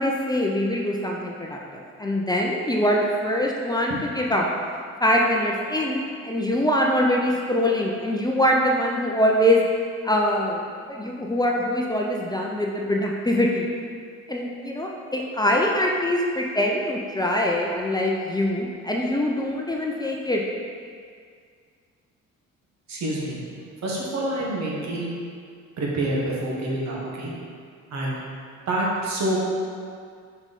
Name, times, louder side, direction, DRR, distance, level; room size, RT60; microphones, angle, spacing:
voice 1, 0.0-4.5 5.0-9.6 10.0-13.7 14.3-20.4, left 1 dB, 15° left, -2 dB, 0.6 m, -23 dB
voice 2, 22.9-23.4 23.8-25.1 25.8-27.3 27.9-28.2 28.7-29.5, right 1 dB, 65° right, -4 dB, 1.6 m, -27 dB
5.3 x 4.8 x 4.1 m, 2.2 s
cardioid pair, 90°, 30 cm